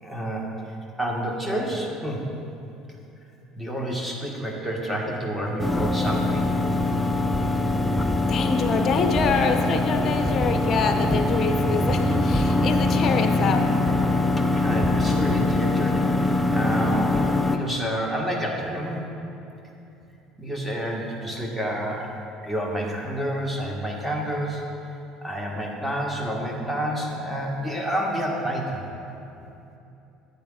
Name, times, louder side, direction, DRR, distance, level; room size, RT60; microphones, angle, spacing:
voice 1, 0.0-0.6 1.0-2.3 3.5-6.5 7.9-8.2 14.5-19.0 20.4-24.6 25.2-29.2, right 1 dB, 5° right, -2 dB, 1.6 m, -29 dB
sound 1, 5.6-17.6, left 2 dB, 10° left, 0.6 m, -23 dB
voice 2, 8.3-13.7, left 5 dB, 40° left, 5 dB, 0.8 m, -25 dB
14.5 x 8.5 x 2.5 m, 2.8 s
figure-of-eight pair, 60°, 0 cm